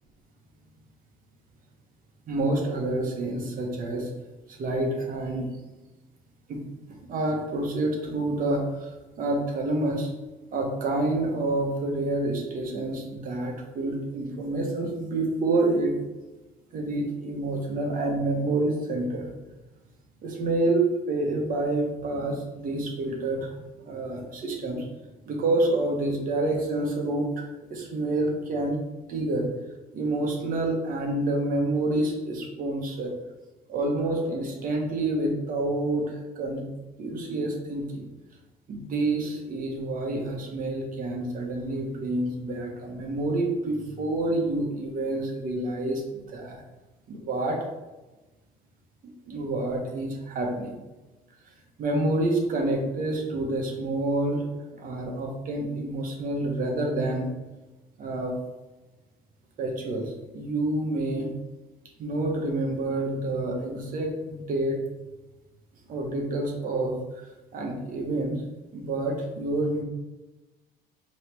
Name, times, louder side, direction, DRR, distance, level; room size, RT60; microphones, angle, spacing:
voice 1, 2.3-4.1 4.5-5.5 6.5-6.6 7.0-8.9 9.2-10.1 10.5-15.9 16.7-19.3 20.2-23.6 23.8-24.8 25.3-28.8 29.1-29.5 29.9-33.1 33.7-36.7 37.0-38.1 38.7-46.6 47.1-47.7 49.0-50.7 51.8-54.5 54.8-57.3 58.0-58.4 59.6-61.3 62.0-64.8 65.9-68.4 68.7-69.8, right 2 dB, 55° right, 1 dB, 1.1 m, -28 dB
4.5 x 3.1 x 3.4 m, 1.1 s
cardioid pair, 110°, 17 cm